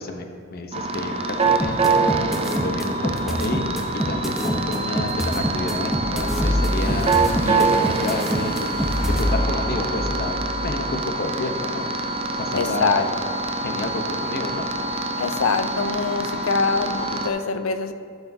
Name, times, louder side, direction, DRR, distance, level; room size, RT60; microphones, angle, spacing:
voice 1, 0.0-2.3 2.6-7.1 7.4-10.4 10.6-11.9 12.4-13.1 13.6-14.7, left 2 dB, 45° left, 4 dB, 0.8 m, -30 dB
sound 1, 0.7-17.3, right 3 dB, 30° right, 0.4 m, -25 dB
sound 2, 1.6-9.2, equal, ahead, 0.8 m, -26 dB
sound 3, 5.9-11.1, left 1 dB, 30° left, 1.5 m, -27 dB
voice 2, 12.5-13.1 15.2-17.9, left 4 dB, 80° left, 10 dB, 0.5 m, -24 dB
12.0 x 8.2 x 2.7 m, 2.2 s
head